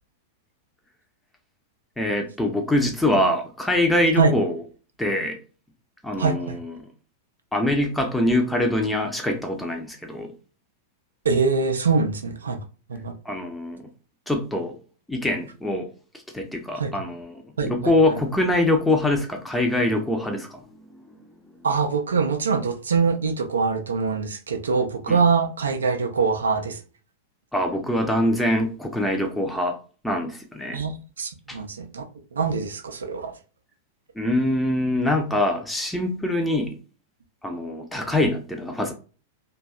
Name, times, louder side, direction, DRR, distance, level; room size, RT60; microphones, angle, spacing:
voice 1, 2.0-4.6 5.0-5.4 6.0-6.9 7.5-10.3 13.3-13.9 14.3-14.8 15.1-15.9 16.3-21.3 25.1-25.2 27.5-29.8 30.0-30.8 31.5-31.6 34.2-36.8 37.4-38.9, left 1 dB, 5° left, 0.6 m, -24 dB
voice 2, 6.2-6.6 11.2-12.6 12.9-13.1 16.8-16.9 17.6-18.2 21.6-26.8 30.7-32.0 32.3-33.3, right 5 dB, 70° right, 0.4 m, -24 dB
2.6 x 2.2 x 2.3 m
figure-of-eight pair, 95°, 0 cm